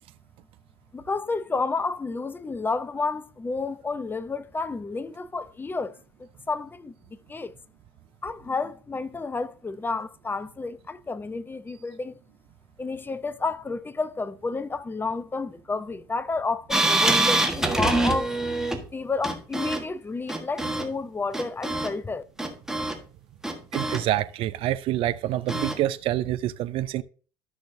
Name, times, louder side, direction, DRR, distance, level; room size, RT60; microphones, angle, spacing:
voice 1, 0.9-5.9 6.2-6.9 7.3-7.5 8.2-12.1 12.8-18.4 18.9-22.2, left 3 dB, 15° left, 0.7 m, -30 dB
sound 1, 16.7-18.8 19.2-19.8 20.3-20.9 21.3-21.9 22.4-23.0 23.4-24.0 25.5-25.8, right 2 dB, 5° right, 1.5 m, -25 dB
voice 2, 23.7-27.0, right 13 dB, 50° right, 0.6 m, -27 dB
13.0 x 6.3 x 2.7 m
hypercardioid pair, 65°, 12 cm